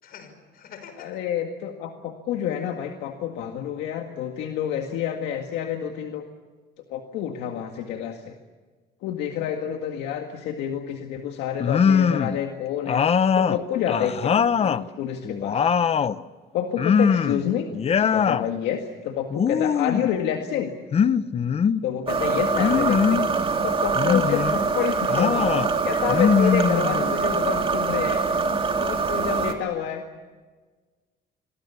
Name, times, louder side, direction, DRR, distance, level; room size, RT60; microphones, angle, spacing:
voice 1, 0.0-1.2, left 7 dB, 60° left, 9 dB, 5.7 m, -45 dB
voice 2, 1.0-6.2 6.9-8.3 9.0-13.0 13.4-15.6 16.5-17.7 18.0-20.7 21.8-23.2 23.6-28.3 28.8-30.0, left 9 dB, 90° left, 4 dB, 1.9 m, -28 dB
sound 1, 11.6-12.4 12.9-14.8 15.2-16.2 16.8-17.4 17.7-18.5 19.3-20.1 20.9-21.8 22.6-23.3 23.9-24.6 25.1-25.7 26.1-27.2, left 7 dB, 35° left, 0.8 m, -22 dB
sound 2, 22.1-29.5, right 4 dB, 30° right, 2.9 m, -24 dB
28.0 x 24.0 x 7.1 m, 1.4 s
cardioid pair, 110°, 17 cm